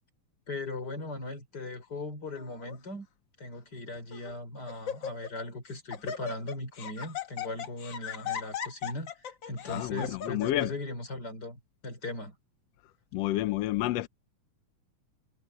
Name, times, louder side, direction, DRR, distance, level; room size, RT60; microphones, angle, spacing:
voice 1, 0.5-3.1 3.4-12.4, left 2 dB, 30° left, 5.3 m, -39 dB
Laughter, 2.4-2.8 3.5-3.6 4.1-4.4 4.7-5.4 5.7-10.7, left 8 dB, 55° left, 1.4 m, -38 dB
voice 2, 9.7-10.7 13.1-14.1, left 15 dB, 75° left, 1.5 m, -29 dB
omnidirectional pair, 3.8 m